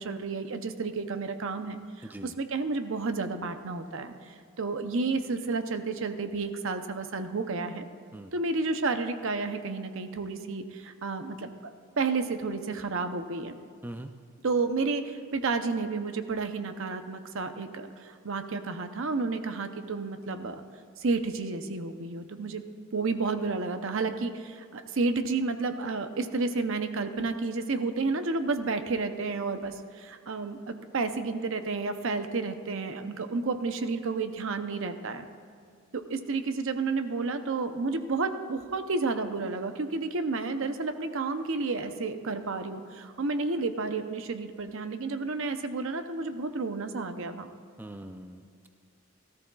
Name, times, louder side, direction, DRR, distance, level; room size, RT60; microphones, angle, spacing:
voice 1, 0.0-7.9 8.3-11.7 12.0-13.5 14.4-20.6 21.0-22.6 22.9-35.3 35.9-47.5, right 3 dB, 65° right, 8 dB, 0.7 m, -31 dB
voice 2, 47.8-48.7, right 1 dB, 10° right, 6 dB, 0.3 m, -42 dB
17.5 x 13.5 x 2.3 m, 2.2 s
head